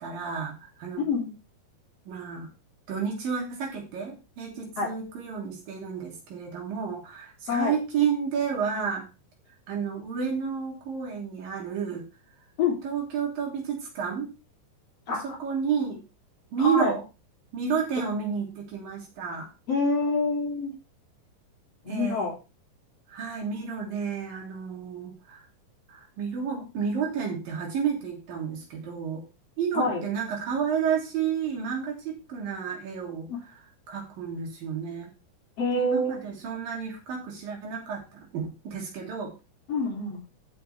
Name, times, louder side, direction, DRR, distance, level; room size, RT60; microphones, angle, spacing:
voice 1, 0.0-1.1 2.1-2.5 2.9-9.1 9.7-12.0 12.8-14.3 15.1-16.0 16.5-17.0 17.5-19.5 21.9-22.3 23.1-25.4 25.9-29.2 29.6-33.3 33.9-35.1 35.7-39.3, right 7 dB, 85° right, 0 dB, 4.8 m, -31 dB
voice 2, 1.0-1.3 4.8-4.9 7.5-7.7 12.6-12.7 15.1-15.4 16.6-16.9 19.7-20.7 21.8-22.3 29.7-30.0 35.6-36.2 39.7-40.2, left 3 dB, 45° left, -1 dB, 4.2 m, -26 dB
14.0 x 6.8 x 3.5 m, 0.29 s
omnidirectional pair, 3.9 m